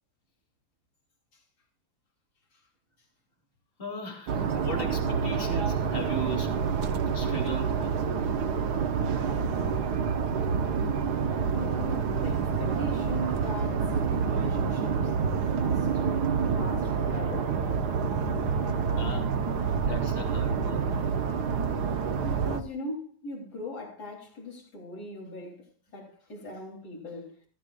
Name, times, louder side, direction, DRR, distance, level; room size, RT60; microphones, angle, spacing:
voice 1, 3.8-6.6 7.1-8.0 18.9-19.4 19.8-20.9, right 1 dB, 35° left, 3.2 m, -37 dB
sound 1, 4.3-22.6, right 6 dB, 75° right, 1.5 m, -28 dB
voice 2, 11.5-15.1 15.6-16.0 16.5-17.6 18.8-18.9 22.2-27.4, left 1 dB, 70° left, 3.9 m, -40 dB
16.5 x 15.0 x 2.4 m
omnidirectional pair, 1.8 m